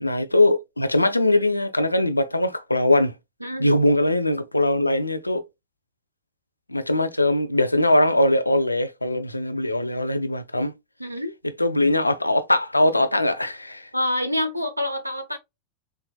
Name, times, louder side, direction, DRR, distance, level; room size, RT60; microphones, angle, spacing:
voice 1, 0.0-3.1 3.6-5.4 6.7-10.7 11.6-13.9, left 1 dB, 85° left, 0.4 m, -21 dB
voice 2, 3.4-3.8 11.0-11.3 13.9-15.4, left 1 dB, 90° right, 0.6 m, -27 dB
3.5 x 3.0 x 2.3 m
figure-of-eight pair, 90°, 0 cm